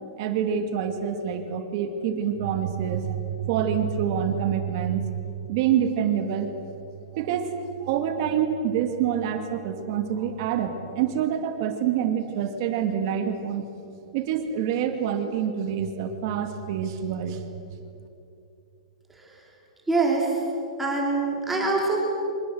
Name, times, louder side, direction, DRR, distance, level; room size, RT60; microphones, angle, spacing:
voice 1, 0.2-5.2 5.5-6.5 7.1-13.7 14.1-17.4 17.8-17.9, right 8 dB, 35° right, 6 dB, 2.2 m, -26 dB
voice 2, 19.9-20.4 20.8-22.0, right 3 dB, 5° right, -3 dB, 3.5 m, -24 dB
29.0 x 26.0 x 7.9 m, 2.7 s
supercardioid pair, 175°, 4 cm